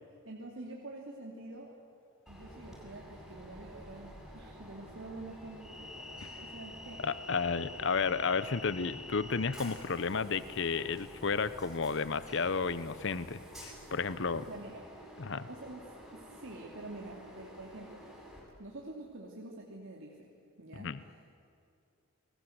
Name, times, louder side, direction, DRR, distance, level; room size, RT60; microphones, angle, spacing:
voice 1, 0.2-1.7 2.3-7.0 14.5-14.9 15.5-15.8 16.1-18.3 18.6-21.2, right 2 dB, 60° right, -2 dB, 2.8 m, -47 dB
Train, 2.3-18.4, left 1 dB, ahead, 7.5 m, -49 dB
voice 2, 7.0-14.5 15.2-15.5 20.8-21.0, left 5 dB, 55° left, 15 dB, 0.8 m, -32 dB
29.5 x 21.0 x 8.0 m, 2.5 s
head